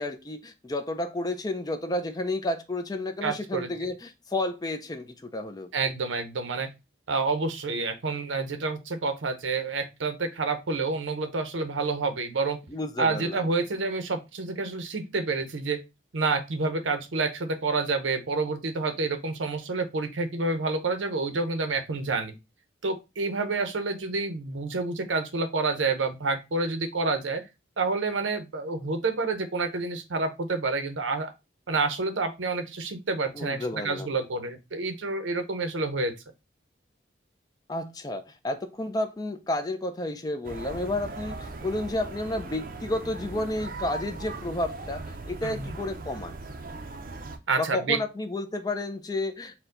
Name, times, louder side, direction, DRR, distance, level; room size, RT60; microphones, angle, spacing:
voice 1, 0.0-5.7 12.7-13.5 33.3-34.1 37.7-46.4 47.6-49.6, left 2 dB, 20° left, 0.4 m, -31 dB
voice 2, 3.2-3.7 5.7-6.7 7.1-12.6 13.0-15.8 16.1-22.3 22.8-27.4 27.8-31.3 31.7-36.1 45.4-45.7 47.5-48.0, right 3 dB, 90° right, 0.7 m, -28 dB
sound 1, 40.4-47.4, right 3 dB, 50° right, 0.5 m, -39 dB
4.4 x 2.2 x 3.8 m
head